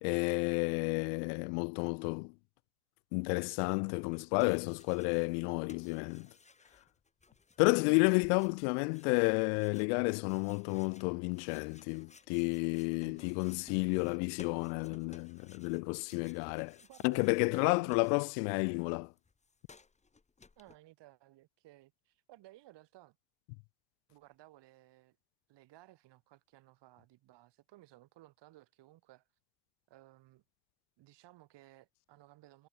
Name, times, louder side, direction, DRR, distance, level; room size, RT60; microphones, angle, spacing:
voice 1, 0.0-2.3 3.1-6.3 7.6-16.8 17.0-19.1, left 40 dB or more, 65° left, 0.7 m, -31 dB
sound 1, 4.2-5.4 5.7-18.6 18.9-20.8, left 4 dB, 15° left, 1.6 m, -60 dB
voice 2, 13.0-13.3 16.8-18.0 20.6-23.2 24.1-25.2 25.5-29.3 29.9-30.4 31.0-32.7, right 16 dB, 55° right, 5.2 m, -58 dB
supercardioid pair, 90°, 49 cm